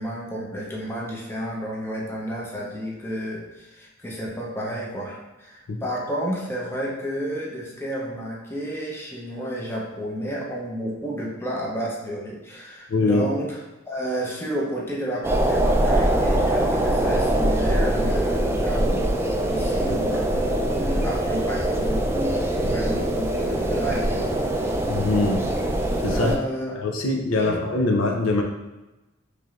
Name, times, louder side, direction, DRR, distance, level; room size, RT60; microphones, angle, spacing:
voice 1, 0.0-13.6 13.9-19.0 19.5-24.3 26.1-26.8 27.4-27.6, equal, 10° left, -4 dB, 0.7 m, -31 dB
voice 2, 12.9-13.2 22.6-22.8 24.9-25.4 26.0-26.3 26.8-28.4, left 2 dB, 80° left, 1 dB, 0.6 m, -22 dB
sound 1, 15.2-26.4, right 1 dB, 15° right, 0.4 m, -23 dB
4.8 x 3.2 x 2.4 m, 1.0 s
head